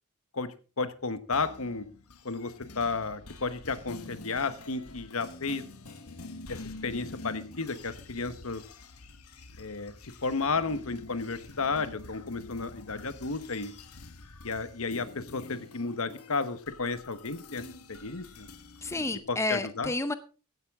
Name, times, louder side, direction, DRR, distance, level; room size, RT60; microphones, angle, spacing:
voice 1, 0.3-1.9 2.2-5.6 6.5-8.6 9.6-9.9 10.2-13.7 14.4-18.5 19.3-19.9, left 4 dB, 70° left, 12 dB, 1.1 m, -33 dB
sound 1, 1.3-19.2, left 3 dB, 85° left, 1.4 m, -47 dB
voice 2, 18.8-20.1, left 2 dB, 10° left, 11 dB, 0.6 m, -30 dB
15.0 x 11.0 x 3.6 m, 0.35 s
head